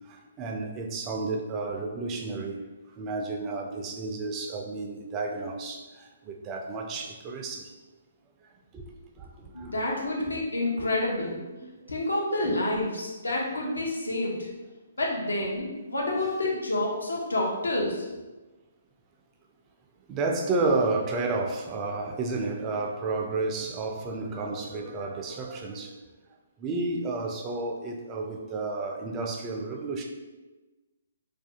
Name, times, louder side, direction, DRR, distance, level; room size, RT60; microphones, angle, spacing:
voice 1, 0.1-2.6 3.0-7.7 8.7-8.8 9.2-9.3 9.6-9.8 10.1-10.3 10.8-10.9 11.6-11.7 12.4-12.6 20.1-26.0 26.6-30.0, right 3 dB, 25° right, 2 dB, 0.3 m, -31 dB
voice 2, 9.5-11.4 11.9-14.5 15.0-18.1, left 2 dB, 85° left, -2 dB, 0.7 m, -28 dB
2.4 x 2.2 x 2.7 m, 1.2 s
figure-of-eight pair, 135°, 0 cm